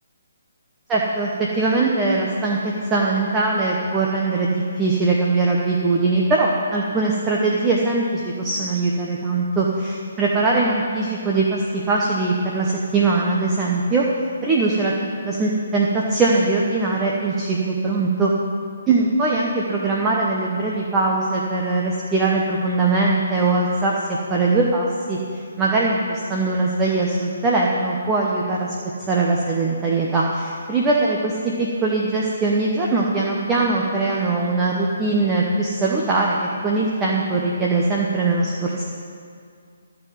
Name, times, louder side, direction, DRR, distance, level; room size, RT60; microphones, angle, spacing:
voice 1, 0.9-1.3 1.6-14.1 14.4-18.3 18.9-23.9 24.3-25.2 25.6-28.7 29.1-38.8, right 3 dB, 15° right, -3 dB, 1.0 m, -21 dB
14.0 x 4.7 x 8.9 m, 2.3 s
hypercardioid pair, 155°, 0 cm